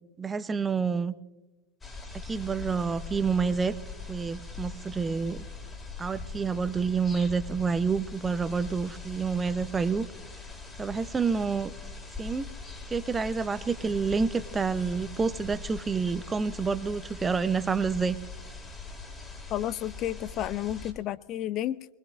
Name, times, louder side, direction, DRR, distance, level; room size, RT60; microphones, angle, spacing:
voice 1, 0.2-1.1 2.1-3.8 4.1-5.5 6.0-10.1 10.8-11.7 12.2-12.5 12.9-18.2, right 5 dB, 15° right, 16 dB, 0.6 m, -28 dB
sound 1, 1.8-20.9, left 4 dB, 15° left, 2.1 m, -42 dB
voice 2, 19.5-21.9, left 12 dB, 35° left, 17 dB, 0.4 m, -31 dB
21.5 x 21.5 x 2.5 m, 1.1 s
figure-of-eight pair, 90°, 0 cm